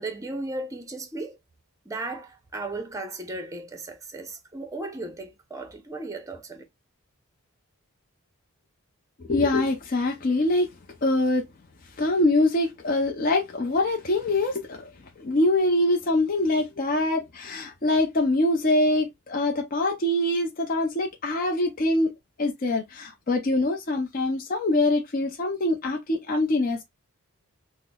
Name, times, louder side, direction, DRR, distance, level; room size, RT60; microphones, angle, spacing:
voice 1, 0.0-1.4 1.8-6.6, right 2 dB, 15° right, 0.6 m, -35 dB
voice 2, 9.2-10.7 11.0-11.5 12.0-14.9 15.2-22.1 22.4-26.8, left 2 dB, 40° left, 0.5 m, -24 dB
5.7 x 2.0 x 2.3 m
head